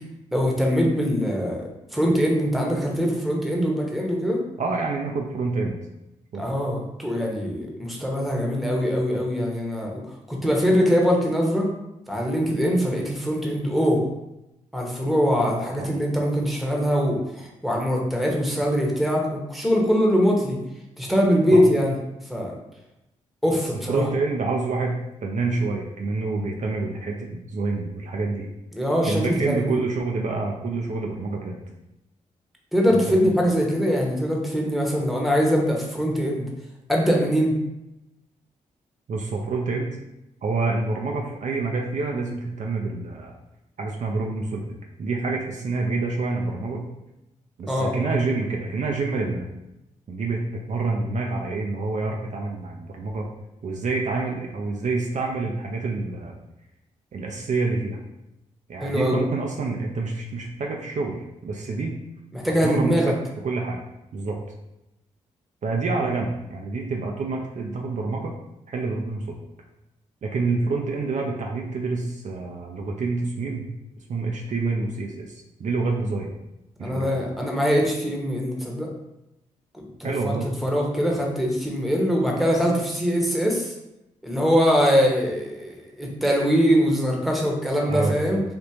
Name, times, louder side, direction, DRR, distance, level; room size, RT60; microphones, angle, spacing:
voice 1, 0.3-4.4 6.4-11.7 12.1-14.0 14.7-20.6 21.0-21.9 22.3-22.5 23.4-24.1 28.7-29.8 32.7-36.5 36.9-37.6 47.7-47.9 58.8-59.2 62.3-63.1 76.8-78.9 79.7-80.3 80.6-83.7 84.2-88.4, equal, ahead, -1 dB, 1.0 m, -22 dB
voice 2, 4.6-5.8 6.3-6.5 15.8-15.9 21.5-21.6 23.9-25.0 25.2-28.5 29.0-31.6 32.9-33.3 39.1-40.0 40.4-43.3 43.8-46.9 47.6-49.5 50.1-53.3 53.6-56.4 57.1-58.0 58.7-61.9 62.6-63.1 63.4-63.8 64.1-64.4 65.6-68.3 68.7-69.4 70.2-73.7 74.1-76.3 76.8-77.2 80.0-80.5 87.9-88.4, right 3 dB, 55° right, 0 dB, 0.5 m, -27 dB
3.5 x 2.4 x 2.9 m, 0.90 s
supercardioid pair, 45°, 15 cm